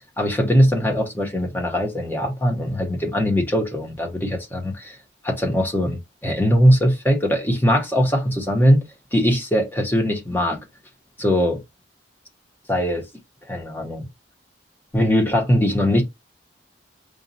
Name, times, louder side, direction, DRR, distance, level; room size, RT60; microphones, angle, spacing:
voice 1, 0.2-5.0 5.2-8.8 9.1-10.6 11.2-11.6 12.7-13.0 13.5-14.1 14.9-16.0, equal, 10° left, 0.9 m, -20 dB
5.0 x 2.4 x 2.7 m
head